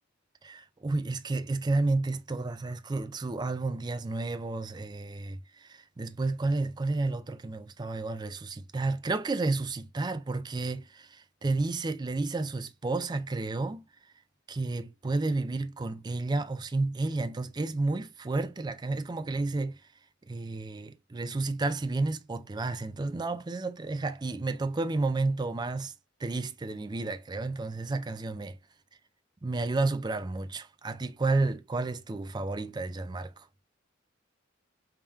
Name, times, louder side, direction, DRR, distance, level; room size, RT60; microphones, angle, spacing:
voice 1, 0.4-13.8 14.5-19.8 20.3-25.9 26.2-28.6 29.4-33.5, right 3 dB, 20° right, 0.4 m, -31 dB
3.5 x 2.9 x 3.4 m
head